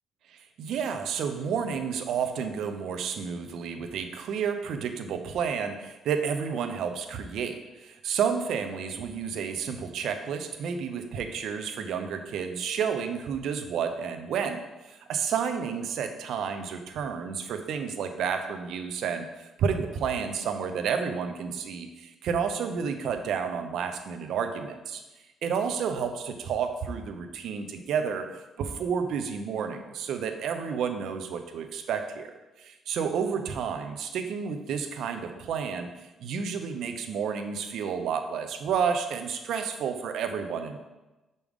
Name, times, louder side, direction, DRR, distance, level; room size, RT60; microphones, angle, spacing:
voice 1, 0.3-25.0 25.4-28.3 28.6-35.9 36.2-40.8, right 6 dB, 75° right, 7 dB, 0.7 m, -31 dB
6.1 x 5.3 x 3.6 m, 1.1 s
cardioid pair, 90°, 0 cm